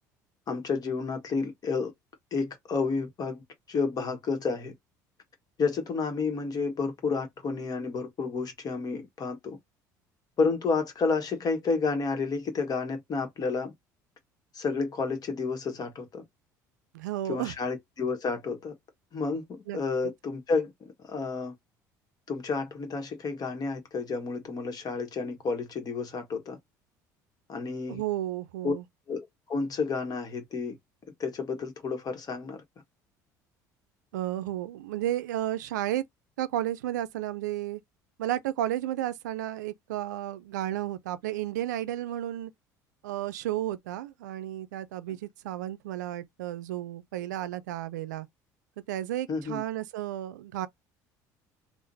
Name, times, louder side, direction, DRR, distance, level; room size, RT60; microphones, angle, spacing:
voice 1, 0.5-1.9 2.3-3.4 3.7-4.7 5.6-9.6 10.4-13.7 14.5-16.2 17.3-18.7 19.1-21.5 22.3-26.6 27.5-28.0 28.6-28.7 29.1-29.2 29.5-30.8 31.2-32.6 49.3-49.6, left 4 dB, 45° left, 1.4 m, -30 dB
voice 2, 16.9-17.5 19.7-19.8 27.9-28.8 34.1-36.0 36.4-37.8 38.2-42.5 43.0-48.3 48.9-50.7, right 13 dB, 85° right, 0.4 m, -32 dB
3.7 x 2.5 x 2.7 m
hypercardioid pair, 70°, 9 cm